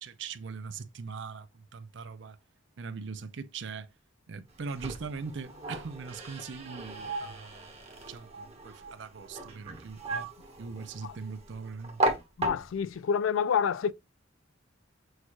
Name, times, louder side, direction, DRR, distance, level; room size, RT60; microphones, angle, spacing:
voice 1, 0.0-2.4 2.8-3.9 4.3-7.7 8.1-10.3 10.6-12.0, right 5 dB, 65° right, 0.5 m, -41 dB
sound 1, 4.5-13.0, right 2 dB, 35° right, 1.2 m, -36 dB
voice 2, 12.4-13.9, left 7 dB, 85° left, 0.4 m, -28 dB
6.4 x 2.3 x 3.0 m
head